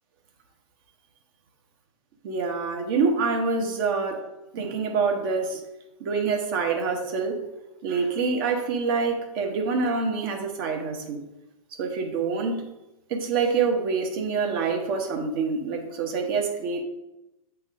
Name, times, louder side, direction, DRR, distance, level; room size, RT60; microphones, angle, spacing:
voice 1, 2.2-4.2 4.5-5.6 6.0-7.4 7.8-11.2 11.7-12.6 13.1-16.8, right 4 dB, 35° right, 3 dB, 1.1 m, -26 dB
6.9 x 3.7 x 5.2 m, 0.97 s
figure-of-eight pair, 110°, 19 cm